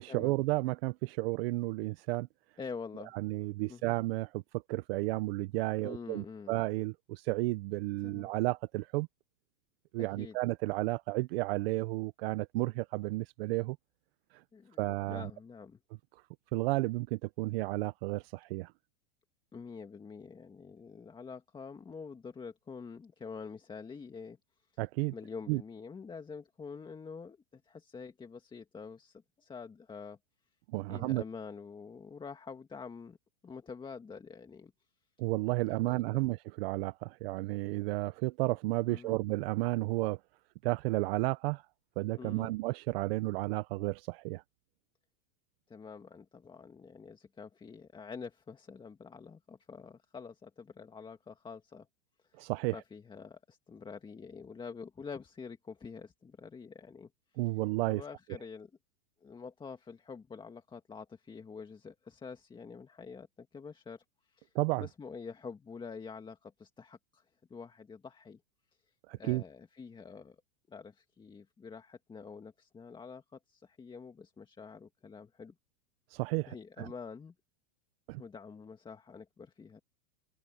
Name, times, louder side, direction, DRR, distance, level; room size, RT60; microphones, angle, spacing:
voice 1, 0.0-2.3 3.1-9.1 9.9-13.8 14.8-15.3 16.5-18.7 24.8-25.1 25.5-25.6 30.7-31.2 35.2-40.2 40.6-41.6 42.0-44.4 52.4-52.7 57.4-58.0 64.5-64.9 69.1-69.4 76.1-76.9 78.1-78.2, right 21 dB, 55° right, 0.9 m, -32 dB
voice 2, 2.6-3.1 3.7-4.0 5.8-6.5 8.0-8.3 10.0-10.4 14.5-15.8 19.5-24.7 25.1-30.2 30.9-33.2 33.4-34.7 35.7-36.3 38.9-39.2 42.2-42.6 45.7-51.9 52.2-57.5 57.9-58.7 59.2-68.4 68.7-70.4 70.7-75.6 76.5-77.3 78.2-79.8, left 5 dB, 15° left, 2.0 m, -47 dB
supercardioid pair, 140°, 36 cm